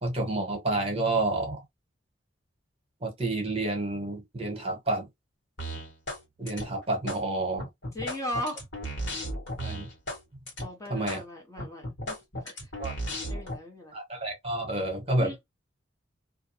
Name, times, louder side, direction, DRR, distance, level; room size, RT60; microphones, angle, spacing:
voice 1, 0.0-1.6 3.0-5.1 6.4-7.7 9.6-9.9 10.9-11.2 12.8-12.9 13.9-15.4, right 2 dB, 30° right, 1.0 m, -29 dB
sound 1, 5.6-6.2 6.5-7.2 7.6-10.2 10.5-10.7 11.1-11.2 11.6-13.6, equal, 80° left, 1.3 m, -35 dB
voice 2, 7.9-8.6 10.6-12.7 13.3-14.0 15.2-15.3, left 1 dB, 15° left, 0.7 m, -37 dB
2.4 x 2.2 x 2.8 m
head